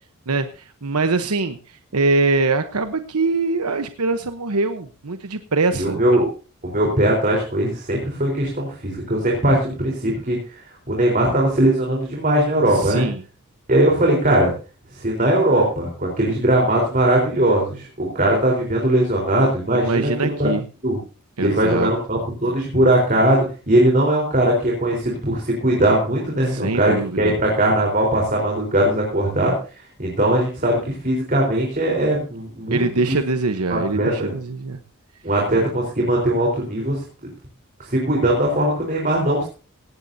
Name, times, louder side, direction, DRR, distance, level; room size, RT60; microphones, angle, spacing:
voice 1, 0.3-6.2 12.7-13.2 19.7-20.6 21.4-21.9 26.4-27.4 32.7-34.8, right 3 dB, 90° right, 8 dB, 1.0 m, -23 dB
voice 2, 5.7-6.3 6.6-10.6 10.9-13.1 13.7-14.5 15.0-20.5 20.8-21.0 21.4-29.5 30.0-32.8 33.7-34.3 35.2-37.0 37.8-39.5, right 1 dB, 35° right, -2 dB, 4.1 m, -20 dB
18.0 x 16.5 x 2.8 m, 0.35 s
head